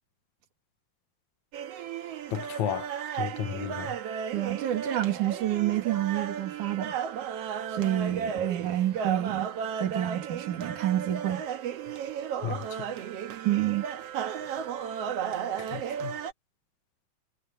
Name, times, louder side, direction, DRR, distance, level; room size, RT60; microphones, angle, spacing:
sound 1, 1.5-16.3, right 8 dB, 60° right, 2.0 m, -34 dB
voice 1, 2.3-2.9 3.2-4.0 12.4-12.9 15.6-16.2, left 10 dB, 70° left, 2.4 m, -33 dB
voice 2, 4.3-7.0 7.7-9.5 9.8-11.4 13.5-13.8, right 12 dB, 80° right, 3.7 m, -28 dB
omnidirectional pair, 3.5 m